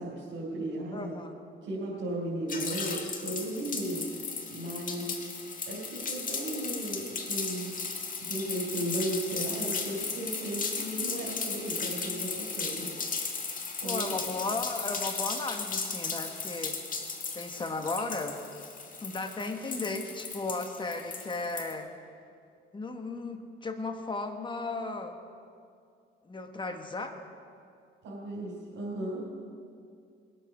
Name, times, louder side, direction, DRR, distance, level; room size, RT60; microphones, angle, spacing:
voice 1, 0.0-1.2 1.6-4.1 4.5-5.2 5.7-7.8 8.2-12.9 13.8-14.2 28.0-29.3, right 1 dB, 80° right, -6 dB, 3.4 m, -35 dB
voice 2, 0.9-1.3 5.0-5.1 13.8-16.8 17.3-18.4 19.0-21.9 22.7-25.2 26.3-27.1, left 3 dB, 25° left, 5 dB, 1.5 m, -35 dB
sound 1, 2.5-21.7, left 4 dB, 40° left, 1.8 m, -36 dB
21.5 x 8.6 x 6.1 m, 2.4 s
cardioid pair, 90°, 20 cm